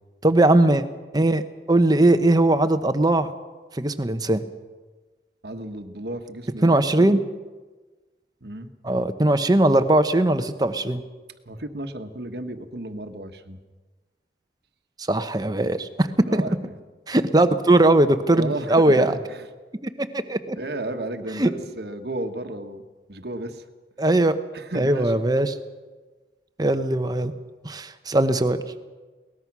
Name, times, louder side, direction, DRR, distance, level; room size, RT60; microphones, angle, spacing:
voice 1, 0.2-0.8 1.1-1.4 1.7-3.3 3.7-4.4 6.6-7.2 8.8-11.0 15.1-16.4 17.1-19.1 20.0-20.6 21.4-21.5 24.0-24.4 24.7-25.6 26.6-27.3 27.6-28.6, right 1 dB, 20° right, 9 dB, 1.0 m, -19 dB
voice 2, 5.4-7.2 8.4-8.7 11.5-13.6 16.3-16.7 18.3-19.5 20.6-22.8 23.1-23.6 24.5-25.2, right 1 dB, 65° right, 7 dB, 1.4 m, -33 dB
22.5 x 19.0 x 6.1 m, 1.3 s
head